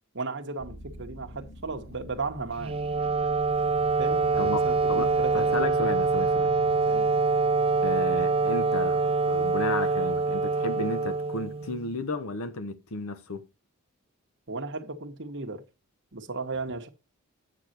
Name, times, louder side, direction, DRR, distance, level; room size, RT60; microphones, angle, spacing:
voice 1, 0.1-2.8 4.0-5.7 6.9-7.1 14.5-15.6 16.1-16.9, right 3 dB, 55° right, 1.3 m, -35 dB
sound 1, 0.6-12.0, equal, 45° left, 1.6 m, -45 dB
Wind instrument woodwind instrument, 2.6-11.9, right 4 dB, 25° right, 0.3 m, -25 dB
voice 2, 4.4-6.5 7.8-13.5, left 3 dB, 70° left, 1.0 m, -33 dB
8.8 x 6.6 x 4.4 m
head